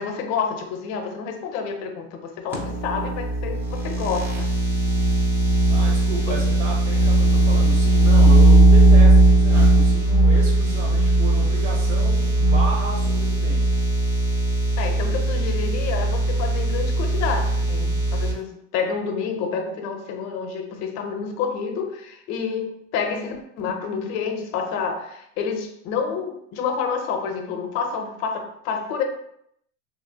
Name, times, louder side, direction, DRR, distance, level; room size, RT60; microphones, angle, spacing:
voice 1, 0.0-4.5 6.3-6.4 14.8-29.0, left 6 dB, 45° left, 0.5 m, -29 dB
sound 1, 2.5-18.3, right 1 dB, 5° right, 0.3 m, -18 dB
voice 2, 5.7-13.7, right 3 dB, 75° right, 1.4 m, -33 dB
2.9 x 2.7 x 2.7 m
supercardioid pair, 135°, 38 cm